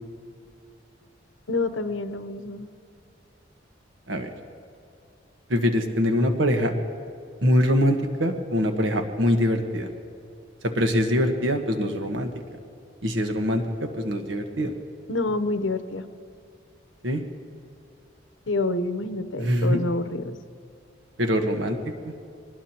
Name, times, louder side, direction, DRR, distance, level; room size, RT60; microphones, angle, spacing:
voice 1, 1.5-2.7 15.1-16.1 18.5-20.4, left 2 dB, 80° left, 10 dB, 0.8 m, -27 dB
voice 2, 5.5-6.7 7.4-9.9 10.7-12.3 13.0-14.7 17.0-17.2 19.4-19.8 21.2-21.8 22.0-22.1, equal, 80° right, 5 dB, 1.4 m, -23 dB
24.0 x 20.0 x 2.9 m, 2.5 s
head